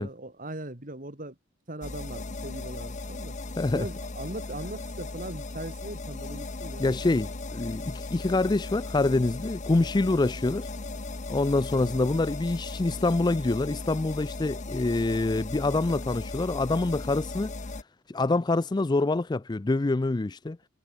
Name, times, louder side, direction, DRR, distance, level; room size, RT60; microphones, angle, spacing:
voice 1, 0.0-1.4 1.7-3.3 3.7-6.8 11.7-12.0, right 1 dB, 40° right, 3.1 m, -39 dB
sound 1, 1.8-17.8, left 2 dB, 35° left, 1.0 m, -37 dB
voice 2, 3.6-3.9 6.8-10.7 11.3-17.5 18.1-20.6, left 2 dB, 20° left, 0.4 m, -26 dB
head